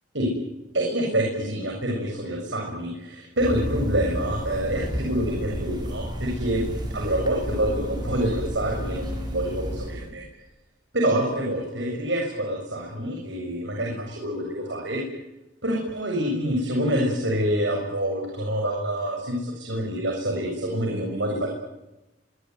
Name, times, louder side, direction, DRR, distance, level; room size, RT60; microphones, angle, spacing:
voice 1, 0.7-10.2 10.9-15.0 15.6-21.5, right 1 dB, 85° right, 0 dB, 7.5 m, -26 dB
sound 1, 3.4-10.1, equal, 25° right, 7.3 m, -31 dB
25.5 x 22.0 x 9.6 m, 0.96 s
head